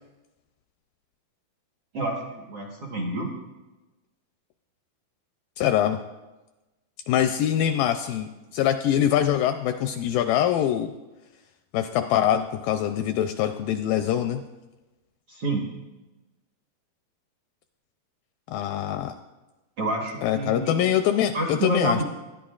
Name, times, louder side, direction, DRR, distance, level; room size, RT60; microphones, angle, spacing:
voice 1, 1.9-3.3 15.3-15.6 19.8-20.7 21.3-22.0, right 2 dB, 60° right, -1 dB, 1.5 m, -28 dB
voice 2, 5.6-6.0 7.1-10.9 11.7-14.4 18.5-19.2 20.2-22.0, left 10 dB, 85° left, 7 dB, 2.0 m, -24 dB
21.0 x 10.5 x 2.4 m, 1.1 s
omnidirectional pair, 4.4 m